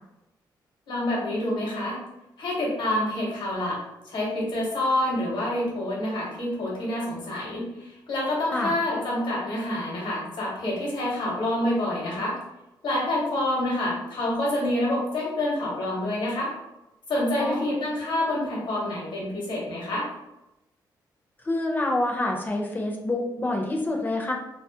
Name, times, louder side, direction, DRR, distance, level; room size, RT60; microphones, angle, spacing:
voice 1, 0.9-2.0 2.4-3.8 4.0-12.4 12.8-16.5 17.1-20.1, left 1 dB, 80° left, -4 dB, 0.9 m, -27 dB
voice 2, 17.4-17.7 21.4-24.3, left 2 dB, 25° left, 0 dB, 0.5 m, -27 dB
2.3 x 2.0 x 2.7 m, 0.93 s
cardioid pair, 85°, 8 cm